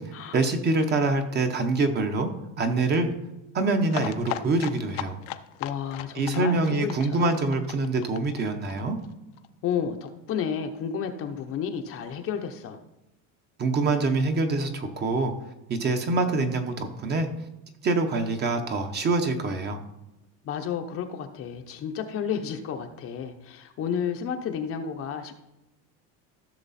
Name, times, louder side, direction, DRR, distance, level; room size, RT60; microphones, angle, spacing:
voice 1, 0.3-2.3 2.6-3.1 3.5-5.2 6.1-9.0 13.6-15.3 15.7-17.3 17.8-19.8, right 3 dB, 25° right, 6 dB, 0.9 m, -25 dB
sound 1, 3.9-9.5 9.7-9.8 10.1-10.2 10.4-10.5, left 14 dB, 65° left, 0.7 m, -37 dB
voice 2, 5.6-7.4 9.6-12.8 20.4-25.3, left 7 dB, 35° left, 5 dB, 0.8 m, -31 dB
14.5 x 6.6 x 4.2 m, 0.95 s
cardioid pair, 165°, 39 cm